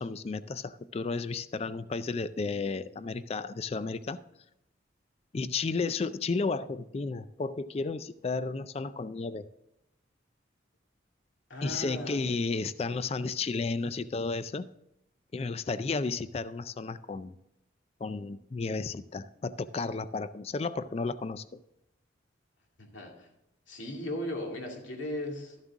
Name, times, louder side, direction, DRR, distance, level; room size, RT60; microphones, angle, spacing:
voice 1, 0.0-4.2 5.3-9.5 11.6-14.7 15.3-17.4 18.0-21.6, left 4 dB, 30° left, 14 dB, 0.3 m, -33 dB
voice 2, 11.5-12.2 22.8-23.3 23.7-25.6, left 1 dB, 80° left, 1 dB, 2.3 m, -37 dB
12.5 x 7.4 x 3.6 m, 0.86 s
head